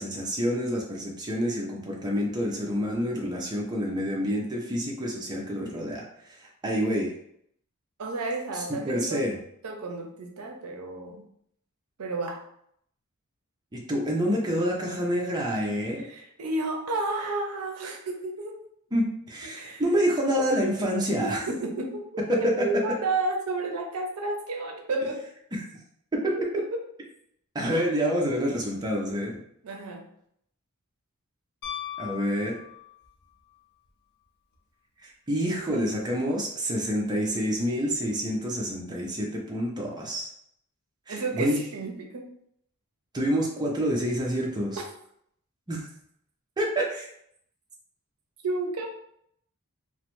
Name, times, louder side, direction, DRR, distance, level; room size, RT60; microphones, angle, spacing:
voice 1, 0.0-6.0 6.3-7.1 8.9-9.3 13.7-16.0 18.9-21.5 22.3-22.4 25.5-25.6 26.1-26.6 27.5-29.4 32.0-32.6 35.0-40.3 41.1-41.6 43.1-44.8 45.7-45.9 46.6-47.1, equal, 20° right, -2 dB, 0.5 m, -28 dB
voice 2, 8.0-9.2 9.6-11.2 12.0-12.4 16.0-18.6 19.4-19.8 21.2-25.3 26.5-26.8 29.6-30.1 41.1-42.3 48.4-48.9, right 2 dB, 75° right, 2 dB, 0.5 m, -31 dB
Piano, 31.6-33.2 35.6-35.7, left 10 dB, 55° left, 0.5 m, -38 dB
3.0 x 2.1 x 3.0 m, 0.70 s
head